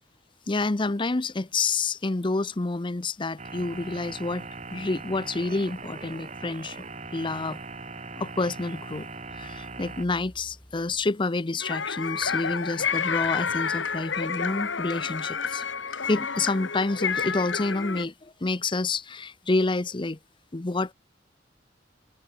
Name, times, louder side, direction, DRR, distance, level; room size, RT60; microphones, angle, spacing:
voice 1, 0.5-6.8 7.1-7.6 8.2-9.1 9.3-15.6 16.1-20.2 20.5-20.9, left 3 dB, 25° left, 0.7 m, -28 dB
sound 1, 3.4-10.1, right 3 dB, 40° right, 2.9 m, -40 dB
sound 2, 3.5-11.1, equal, 10° left, 4.8 m, -56 dB
sound 3, 11.6-18.0, left 6 dB, 85° left, 2.0 m, -30 dB
head